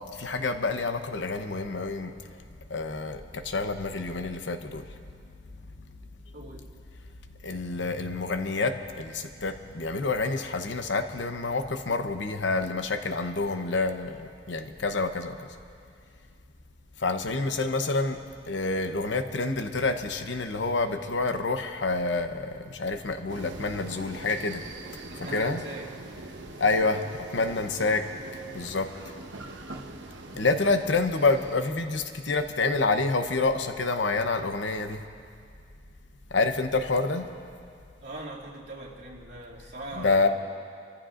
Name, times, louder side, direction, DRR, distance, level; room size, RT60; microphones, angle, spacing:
voice 1, 0.1-2.1 2.7-4.8 7.4-14.2 14.5-15.4 17.0-18.2 18.5-24.6 25.3-25.6 26.6-27.0 27.3-28.0 28.5-28.9 30.3-35.0 36.3-37.3 40.0-40.3, left 3 dB, 80° left, 7 dB, 0.9 m, -27 dB
voice 2, 6.3-6.7 25.0-25.9 38.0-40.3, right 2 dB, 65° right, -5 dB, 2.5 m, -41 dB
sound 1, 23.3-31.6, right 2 dB, 80° right, 1.0 m, -42 dB
26.0 x 14.5 x 2.5 m, 2.3 s
head